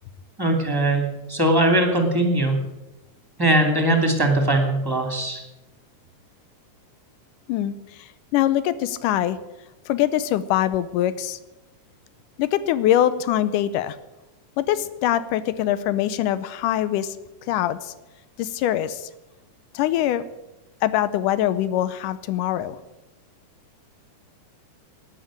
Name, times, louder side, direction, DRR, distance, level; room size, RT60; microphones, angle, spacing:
voice 1, 0.4-2.6 3.4-5.4, right 1 dB, 10° right, 3 dB, 2.1 m, -20 dB
voice 2, 7.5-9.4 9.9-11.4 12.4-14.0 14.6-17.2 17.5-17.9 18.4-19.1 19.7-20.2 20.8-22.8, left 12 dB, 90° left, 14 dB, 2.3 m, -23 dB
12.5 x 10.5 x 8.8 m, 0.98 s
omnidirectional pair, 3.6 m